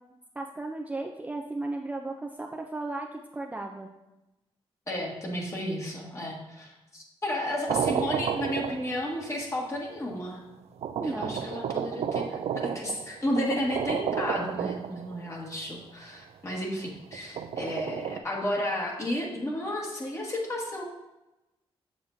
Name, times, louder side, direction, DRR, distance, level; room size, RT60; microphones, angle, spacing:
voice 1, 0.4-3.9 11.0-11.4, right 2 dB, 15° right, 2 dB, 0.5 m, -35 dB
voice 2, 4.9-10.4 11.0-20.8, left 1 dB, 30° left, -2 dB, 1.7 m, -32 dB
sound 1, 7.7-9.2 10.1-10.2 10.8-15.3 17.1-18.2, right 8 dB, 80° right, 0.4 m, -32 dB
7.1 x 7.1 x 2.7 m, 0.97 s
cardioid pair, 110°, 10 cm